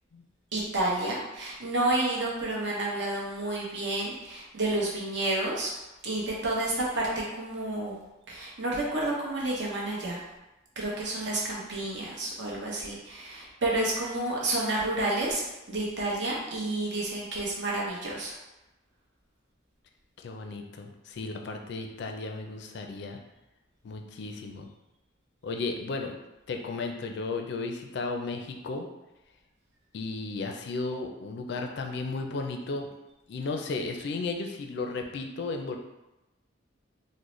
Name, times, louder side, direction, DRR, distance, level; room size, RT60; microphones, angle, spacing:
voice 1, 0.5-5.7 6.0-8.0 8.3-10.2 10.8-15.4 15.7-18.3, right 2 dB, 65° right, -4 dB, 0.9 m, -30 dB
voice 2, 20.2-23.2 23.8-24.7 25.4-26.2 26.5-28.9 29.9-32.9 33.3-35.8, left 3 dB, 60° left, 3 dB, 0.4 m, -34 dB
3.7 x 2.0 x 3.1 m, 0.99 s
head